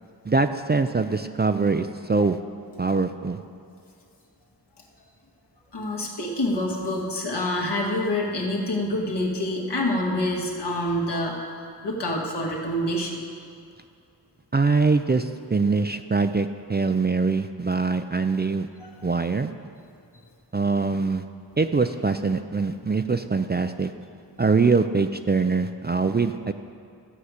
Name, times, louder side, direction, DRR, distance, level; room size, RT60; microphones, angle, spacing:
voice 1, 0.3-2.4 2.8-3.4 14.5-18.7 19.0-19.5 20.5-21.2 21.6-23.9 24.4-26.5, right 4 dB, 25° right, 8 dB, 0.4 m, -23 dB
voice 2, 5.7-11.4 11.8-13.2 18.8-18.9, left 1 dB, 70° left, -1 dB, 2.0 m, -26 dB
13.0 x 4.9 x 8.1 m, 2.4 s
cardioid pair, 55°, 42 cm